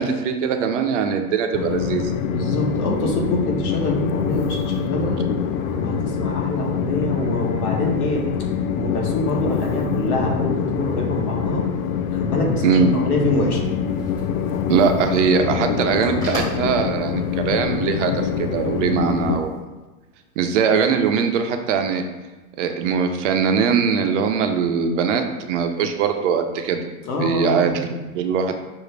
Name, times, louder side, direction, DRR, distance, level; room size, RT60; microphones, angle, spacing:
voice 1, 0.0-2.1 12.6-12.9 14.7-19.6 20.4-22.0 22.6-26.8 27.2-28.6, right 6 dB, 55° right, 6 dB, 0.6 m, -21 dB
Train, 1.5-19.4, left 7 dB, 65° left, 0.5 m, -25 dB
voice 2, 2.2-5.2 5.8-8.3 8.7-11.6 12.1-13.6 27.0-27.8, left 1 dB, 80° left, 0 dB, 1.3 m, -25 dB
sound 1, 13.6-19.6, equal, 10° left, 1.3 m, -40 dB
6.2 x 2.5 x 3.2 m, 1.2 s
supercardioid pair, 155°, 44 cm